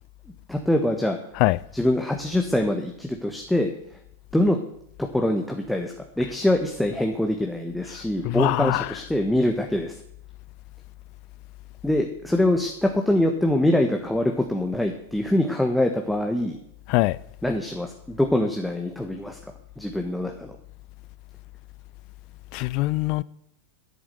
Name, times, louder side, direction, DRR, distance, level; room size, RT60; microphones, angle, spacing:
voice 1, 0.5-1.2 1.7-3.7 4.3-4.6 5.1-10.0 11.8-16.6 17.4-19.4 19.8-20.5, left 1 dB, 5° left, 1.4 m, -24 dB
voice 2, 7.9-9.1 16.9-17.2 22.5-23.2, left 20 dB, 45° left, 0.4 m, -24 dB
11.0 x 9.3 x 8.0 m
figure-of-eight pair, 90°, 0 cm